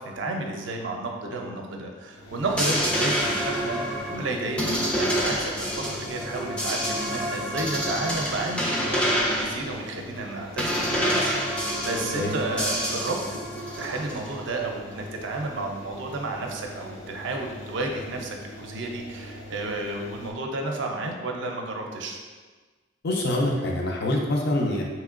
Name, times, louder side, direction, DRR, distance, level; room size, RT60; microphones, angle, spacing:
voice 1, 0.0-13.4 13.8-22.2, right 2 dB, 70° right, 2 dB, 0.5 m, -32 dB
sound 1, 2.1-20.3, equal, 85° left, 0.7 m, -42 dB
sound 2, 2.5-14.3, equal, 5° left, 0.4 m, -28 dB
voice 2, 23.0-24.8, left 1 dB, 55° left, -1 dB, 0.5 m, -25 dB
3.6 x 3.0 x 2.4 m, 1.4 s
head